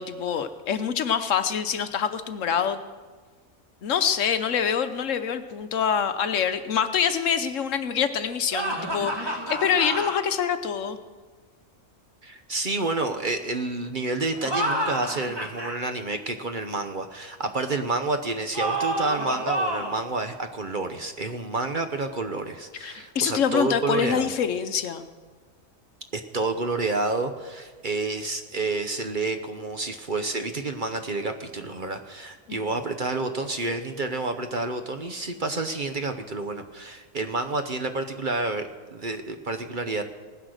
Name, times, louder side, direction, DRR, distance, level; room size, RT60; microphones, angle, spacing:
voice 1, 0.0-2.8 3.8-11.0 22.8-25.1 32.5-32.8, left 7 dB, 70° left, 10 dB, 1.1 m, -25 dB
sound 1, 8.5-10.2 14.3-15.8 18.5-20.0, right 1 dB, 20° right, 1.6 m, -28 dB
voice 2, 12.2-24.3 26.1-40.0, right 3 dB, 40° right, 7 dB, 1.0 m, -29 dB
17.5 x 10.0 x 6.5 m, 1.5 s
omnidirectional pair, 1.4 m